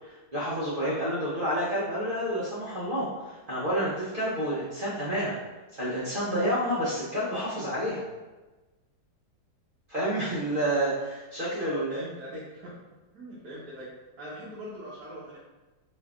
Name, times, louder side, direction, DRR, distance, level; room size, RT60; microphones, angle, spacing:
voice 1, 0.0-5.4 5.7-8.0 9.9-12.0, equal, 50° right, -9 dB, 0.6 m, -29 dB
voice 2, 11.6-12.7 13.1-13.9 14.2-15.4, equal, 70° right, -8 dB, 1.3 m, -41 dB
4.3 x 2.7 x 2.3 m, 1.2 s
omnidirectional pair, 1.9 m